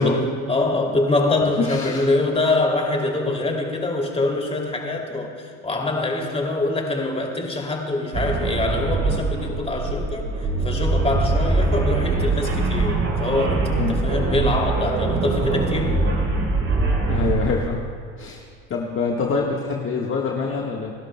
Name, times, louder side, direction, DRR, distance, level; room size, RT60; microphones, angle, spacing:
voice 1, 0.0-16.0, left 2 dB, 15° left, 1 dB, 2.6 m, -24 dB
voice 2, 1.4-2.1 13.8-14.0 17.1-17.8 18.2-18.4 18.7-20.9, left 4 dB, 35° left, -1 dB, 1.4 m, -25 dB
sound 1, 8.1-17.7, right 3 dB, 35° right, 3.2 m, -23 dB
29.5 x 12.0 x 2.2 m, 2.3 s
hypercardioid pair, 85°, 36 cm